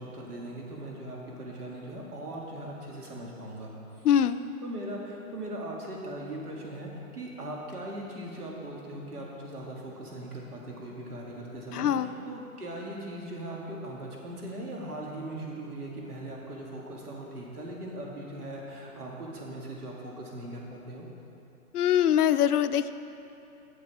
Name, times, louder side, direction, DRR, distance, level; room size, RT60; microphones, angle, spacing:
voice 1, 0.0-4.1 4.6-21.1, right 1 dB, 90° right, -2 dB, 2.1 m, -39 dB
voice 2, 4.0-4.4 11.7-12.1 21.7-22.9, left 10 dB, 90° left, 12 dB, 0.5 m, -23 dB
8.6 x 6.7 x 4.9 m, 2.8 s
hypercardioid pair, 170°, 44 cm